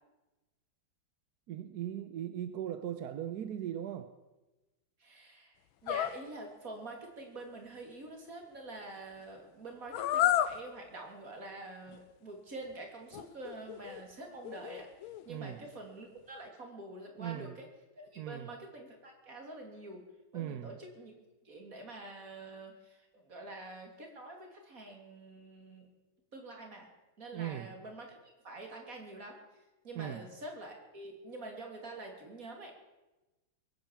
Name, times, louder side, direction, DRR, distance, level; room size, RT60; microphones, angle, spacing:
voice 1, 1.5-4.1 15.3-15.7 17.2-17.6 18.2-18.5 20.3-20.8 27.3-27.7 29.9-30.3, right 10 dB, 65° right, 10 dB, 1.0 m, -39 dB
voice 2, 5.0-5.5 5.8-14.9 15.2-17.7 18.1-20.0 20.3-21.1 21.4-25.9 26.3-26.9 27.2-28.1 28.4-32.7, right 2 dB, 40° right, 2 dB, 3.3 m, -46 dB
sound 1, 5.9-6.2 9.9-10.6 11.9-12.0 13.1-14.0 14.4-15.2, left 12 dB, 75° left, 1.5 m, -31 dB
22.0 x 9.1 x 7.3 m, 1.1 s
omnidirectional pair, 2.3 m